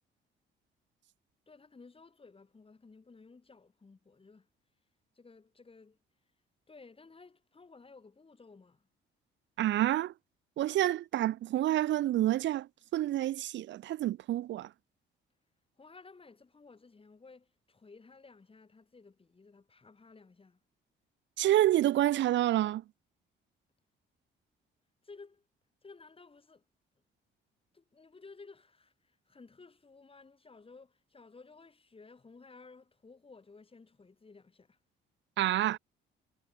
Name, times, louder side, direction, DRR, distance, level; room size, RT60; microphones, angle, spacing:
voice 1, 1.5-4.5 5.2-6.0 6.7-8.9 15.8-20.6 25.0-25.5 25.8-26.6 27.7-34.8, left 4 dB, 30° left, 7.0 m, -55 dB
voice 2, 9.6-10.1 10.6-14.7 21.4-22.8 35.4-35.8, right 13 dB, 65° right, 0.6 m, -28 dB
cardioid pair, 90°, 20 cm